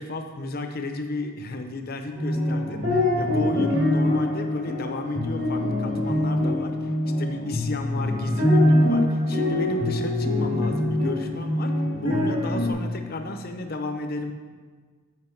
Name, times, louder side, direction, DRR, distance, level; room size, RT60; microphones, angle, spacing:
voice 1, 0.0-6.9 7.2-14.3, left 2 dB, 45° left, 6 dB, 0.6 m, -32 dB
sound 1, 2.1-12.7, left 1 dB, 65° right, 2.1 m, -24 dB
7.7 x 5.8 x 4.5 m, 1.5 s
head